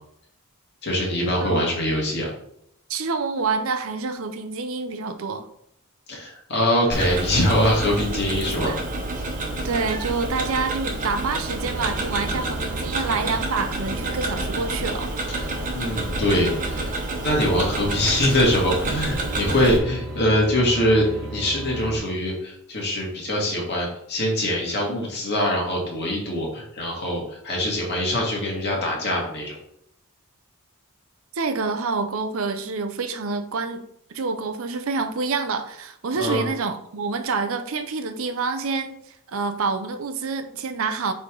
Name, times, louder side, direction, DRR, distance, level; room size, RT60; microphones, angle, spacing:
voice 1, 0.8-2.3 6.1-8.7 15.3-16.9 17.2-29.6 36.2-36.5, left 1 dB, 50° left, 1.9 m, -23 dB
voice 2, 2.9-5.5 8.7-8.8 9.6-15.1 31.3-33.8 34.1-38.9 39.3-41.1, right 4 dB, 65° right, 0.6 m, -27 dB
Tick-tock, 6.9-19.8, right 2 dB, 35° right, 1.1 m, -29 dB
sound 1, 11.6-22.0, right 2 dB, ahead, 2.3 m, -36 dB
8.3 x 3.4 x 3.8 m
head